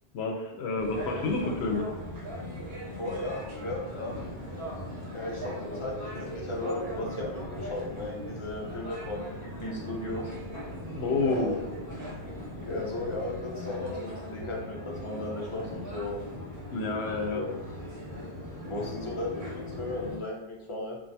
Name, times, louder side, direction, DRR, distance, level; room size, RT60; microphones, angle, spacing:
voice 1, 0.1-1.9 11.0-11.5 16.7-17.4, left 3 dB, 80° left, 2 dB, 0.9 m, -29 dB
sound 1, 0.8-20.2, left 1 dB, 55° right, 1.1 m, -38 dB
voice 2, 3.0-4.3 5.1-10.3 11.2-11.6 12.6-16.3 17.3-17.6 18.6-21.0, left 2 dB, 35° left, -2 dB, 0.6 m, -36 dB
2.4 x 2.3 x 4.0 m, 0.92 s
omnidirectional pair, 1.1 m